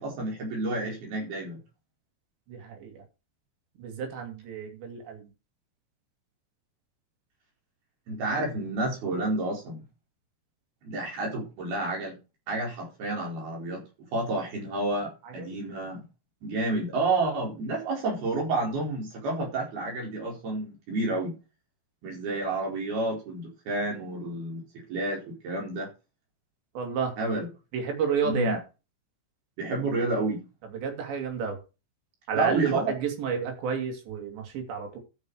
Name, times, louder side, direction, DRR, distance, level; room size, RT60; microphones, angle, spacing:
voice 1, 0.0-1.6 8.1-9.8 10.8-12.2 12.5-13.8 14.1-16.0 16.4-21.3 22.0-25.9 27.2-27.5 28.2-28.6 29.6-30.4 32.3-32.9, right 2 dB, 65° right, 6.4 m, -30 dB
voice 2, 2.5-3.0 3.8-5.3 15.2-15.6 26.7-27.1 27.7-28.6 30.7-31.6 32.3-35.0, right 6 dB, 90° right, 5.1 m, -31 dB
13.0 x 6.6 x 4.9 m
omnidirectional pair, 4.9 m